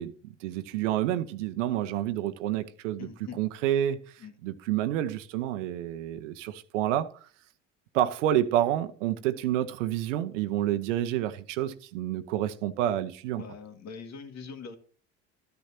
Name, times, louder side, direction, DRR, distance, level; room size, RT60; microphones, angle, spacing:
voice 1, 0.0-3.1 3.4-4.0 4.4-7.3 7.9-13.4, right 12 dB, 75° right, 1.0 m, -29 dB
voice 2, 3.0-3.4 4.2-4.3 13.4-14.8, left 5 dB, 45° left, 2.1 m, -42 dB
13.5 x 10.5 x 2.8 m
hypercardioid pair, 65°, 38 cm